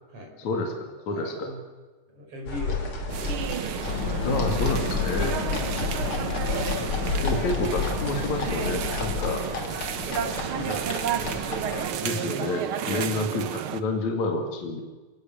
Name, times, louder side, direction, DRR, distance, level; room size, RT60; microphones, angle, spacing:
voice 1, 0.4-1.6 4.3-5.3 6.5-9.4 11.2-11.5 12.0-14.8, left 2 dB, 55° left, 3 dB, 3.6 m, -29 dB
voice 2, 2.1-4.4 5.2-6.1 10.1-11.4 12.9-13.1, left 1 dB, 40° right, 2 dB, 6.4 m, -41 dB
sound 1, 2.5-11.8, left 3 dB, 40° left, 3.4 m, -33 dB
sound 2, 3.1-13.8, right 9 dB, 70° right, 1.2 m, -31 dB
sound 3, 3.8-9.4, left 8 dB, 85° left, 1.0 m, -31 dB
29.5 x 18.5 x 7.8 m, 1.3 s
omnidirectional pair, 4.1 m